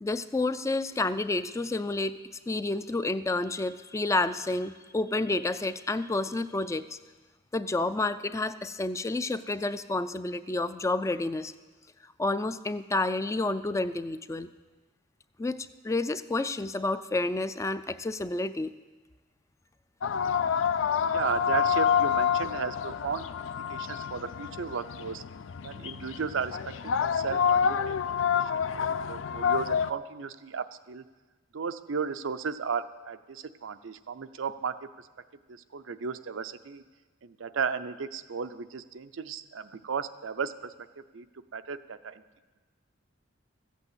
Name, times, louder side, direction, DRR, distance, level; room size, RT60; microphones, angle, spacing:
voice 1, 0.0-2.2 2.5-7.0 7.5-11.5 12.2-14.5 15.4-18.7, left 2 dB, 15° left, 12 dB, 0.3 m, -30 dB
sound 1, 20.0-29.9, left 7 dB, 80° left, 0.4 m, -28 dB
voice 2, 21.1-23.2 23.7-25.2 25.6-26.7 27.0-28.1 28.4-31.1 31.5-34.8 35.5-36.8 37.2-40.7 41.1-41.3 41.5-42.2, right 6 dB, 90° right, 11 dB, 0.6 m, -34 dB
14.0 x 8.4 x 8.1 m, 1.3 s
head